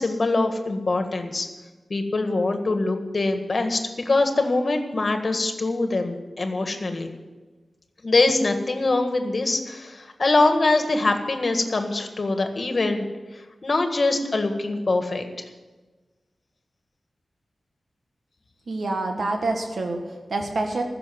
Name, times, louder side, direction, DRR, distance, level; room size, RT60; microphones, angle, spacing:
voice 1, 0.0-1.5 1.9-7.1 8.0-13.1 13.3-15.3, left 2 dB, 50° left, 6 dB, 1.7 m, -23 dB
voice 2, 18.7-20.8, right 2 dB, 70° right, 3 dB, 1.6 m, -27 dB
15.0 x 7.0 x 9.5 m, 1.2 s
wide cardioid pair, 105°, 0 cm